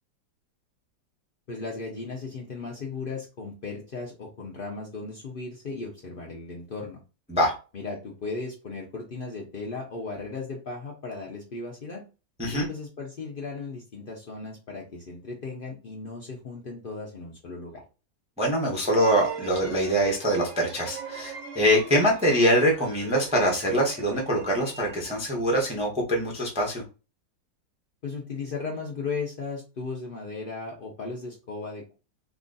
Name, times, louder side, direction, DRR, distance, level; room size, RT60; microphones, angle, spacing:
voice 1, 1.5-7.0 7.7-12.0 12.5-17.8 28.0-32.0, left 4 dB, 80° left, -1 dB, 0.4 m, -36 dB
voice 2, 18.4-26.8, equal, 5° right, -1 dB, 0.6 m, -24 dB
sound 1, 18.8-25.3, right 6 dB, 60° right, 0.8 m, -40 dB
3.0 x 2.4 x 3.8 m, 0.32 s
omnidirectional pair, 1.9 m